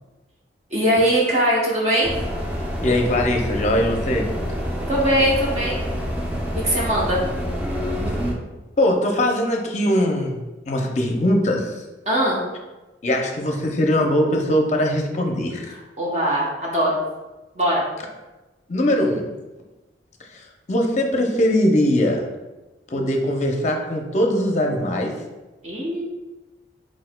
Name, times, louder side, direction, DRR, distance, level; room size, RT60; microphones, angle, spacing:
voice 1, 0.7-2.1 4.9-5.8 6.6-7.2 12.1-12.4 16.0-17.0 17.5-17.8 25.6-26.0, equal, 40° right, -5 dB, 0.9 m, -20 dB
sound 1, 2.0-8.3, equal, 10° right, 0.5 m, -27 dB
voice 2, 2.8-4.3 8.8-10.4 10.7-11.8 13.0-15.7 18.7-19.3 20.3-22.3 22.9-25.1, left 1 dB, 40° left, 2 dB, 0.6 m, -21 dB
4.5 x 4.5 x 2.2 m, 1.1 s
head